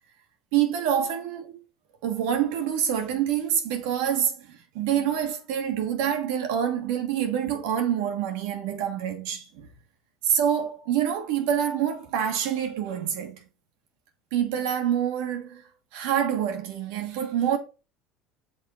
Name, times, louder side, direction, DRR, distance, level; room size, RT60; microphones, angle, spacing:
voice 1, 0.5-1.6 2.0-9.7 10.2-13.5 14.3-15.6 15.9-17.6, right 9 dB, 80° right, 1.4 m, -26 dB
5.9 x 3.7 x 4.6 m
supercardioid pair, 100°, 0 cm